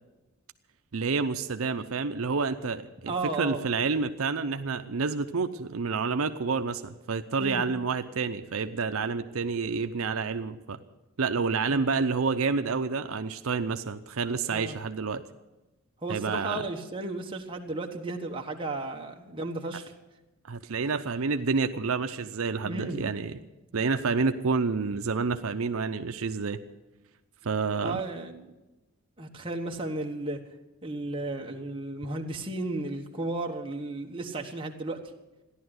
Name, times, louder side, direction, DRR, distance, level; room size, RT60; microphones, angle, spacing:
voice 1, 0.9-3.1 3.4-10.8 11.2-15.2 16.1-16.7 20.5-23.4 23.7-26.6 27.4-28.0, right 4 dB, 75° right, 8 dB, 0.6 m, -29 dB
voice 2, 3.0-3.6 7.4-7.6 14.5-14.8 16.0-19.9 22.6-23.0 27.8-28.5 29.2-30.4 30.8-35.0, right 2 dB, 25° right, 2 dB, 1.3 m, -34 dB
14.5 x 11.0 x 7.9 m, 1.0 s
head